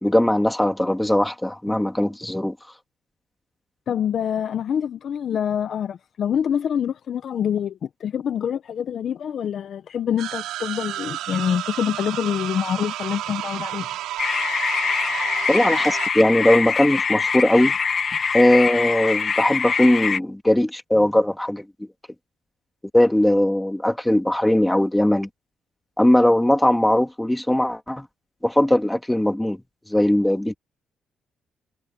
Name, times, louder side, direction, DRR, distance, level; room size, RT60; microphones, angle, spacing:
voice 1, 0.0-2.5 15.5-17.7 18.3-21.9 22.9-25.3 26.0-28.0 28.4-29.6 29.9-30.5, left 1 dB, 5° left, 3.1 m, -19 dB
voice 2, 3.9-13.9, left 8 dB, 60° left, 0.9 m, -26 dB
sound 1, 10.2-16.1, right 13 dB, 90° right, 4.3 m, -31 dB
sound 2, 14.2-20.2, left 5 dB, 45° left, 1.6 m, -24 dB
cardioid pair, 90°, 0 cm